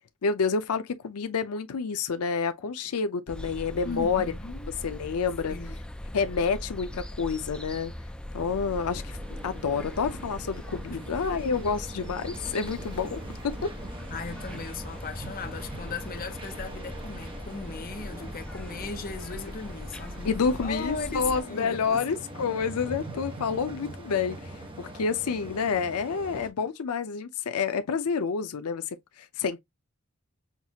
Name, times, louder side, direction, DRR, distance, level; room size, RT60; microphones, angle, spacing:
voice 1, 0.2-4.2 4.8-5.6 6.1-7.9 8.3-9.2 9.4-13.7 20.2-24.5 24.8-29.6, left 5 dB, 90° left, 0.5 m, -29 dB
sound 1, 3.3-21.4, left 1 dB, 5° left, 0.3 m, -40 dB
voice 2, 3.8-4.7 5.5-5.8 10.9-11.0 14.1-22.1, left 4 dB, 40° left, 0.7 m, -37 dB
sound 2, 8.3-26.5, right 1 dB, 25° right, 1.1 m, -43 dB
5.8 x 2.4 x 2.8 m
head